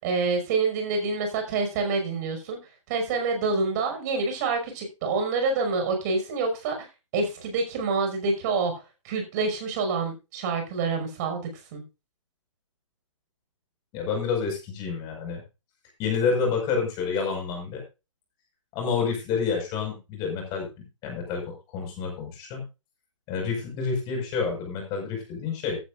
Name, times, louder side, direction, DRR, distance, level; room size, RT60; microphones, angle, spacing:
voice 1, 0.0-2.6 2.9-6.9 7.1-8.7 9.0-11.4 11.7-11.8, right 4 dB, 35° right, 4 dB, 5.7 m, -27 dB
voice 2, 13.9-15.4 16.0-17.8 18.7-20.7 21.0-21.4 21.7-22.6 23.3-25.8, left 5 dB, 25° left, 2 dB, 5.4 m, -28 dB
14.5 x 12.0 x 2.5 m, 0.28 s
figure-of-eight pair, 125°, 17 cm